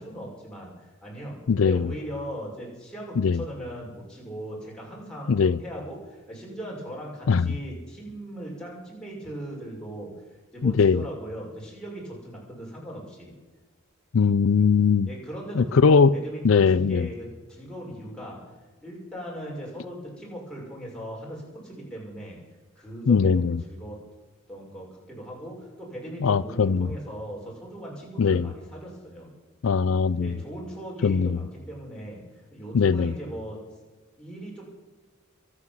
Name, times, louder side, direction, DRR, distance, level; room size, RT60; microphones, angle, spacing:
voice 1, 0.0-1.4 1.6-10.1 10.5-13.3 15.1-18.4 18.8-22.4 22.8-24.0 24.5-29.3 30.1-32.2 32.5-33.6 34.2-34.6, right 1 dB, 5° left, -4 dB, 6.3 m, -38 dB
voice 2, 1.5-1.9 3.2-3.4 5.3-5.6 7.3-7.5 10.6-11.0 14.1-15.1 15.6-16.1 16.4-17.1 23.1-23.6 26.2-26.9 28.2-28.5 29.6-30.3 31.0-31.4 32.7-33.1, left 5 dB, 70° left, 16 dB, 0.5 m, -20 dB
23.0 x 8.6 x 7.4 m, 1.3 s
head